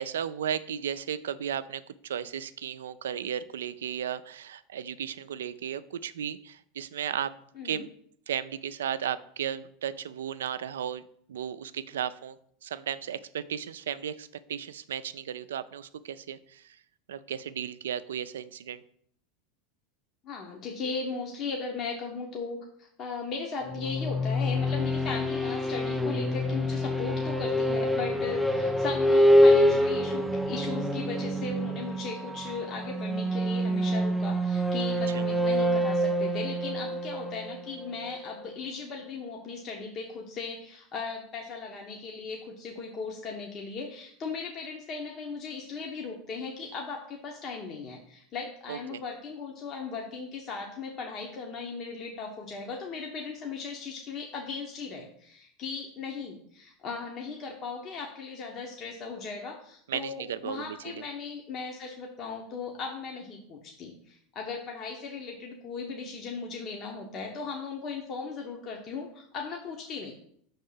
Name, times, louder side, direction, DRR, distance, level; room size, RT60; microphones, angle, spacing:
voice 1, 0.0-7.4 7.6-7.9 8.3-11.0 11.3-16.8 17.1-18.8 35.1-35.2 48.7-49.0 59.9-61.1, right 9 dB, 85° right, 14 dB, 0.3 m, -35 dB
voice 2, 20.2-70.1, left 4 dB, 45° left, 0 dB, 1.0 m, -37 dB
sound 1, 23.7-38.3, equal, 5° right, 0.5 m, -26 dB
5.5 x 3.6 x 5.5 m, 0.66 s
hypercardioid pair, 95°, 0 cm